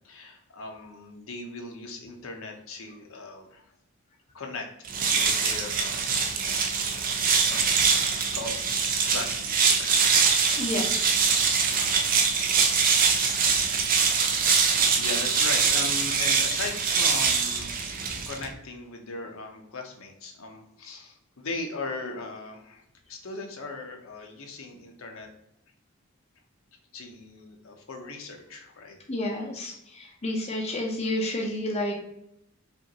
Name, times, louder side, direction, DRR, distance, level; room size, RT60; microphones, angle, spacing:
voice 1, 0.0-3.6 4.3-4.7 5.1-6.1 6.5-6.9 7.5-7.8 8.3-8.6 9.1-10.1 14.4-22.8 23.1-25.3 26.9-29.0, left 3 dB, 65° left, 3 dB, 0.7 m, -38 dB
sound 1, 4.8-18.5, right 5 dB, 40° right, 0.5 m, -24 dB
voice 2, 10.6-11.1 11.7-11.9 29.1-31.9, left 1 dB, 30° left, -1 dB, 0.6 m, -30 dB
5.2 x 2.5 x 2.9 m, 0.79 s
head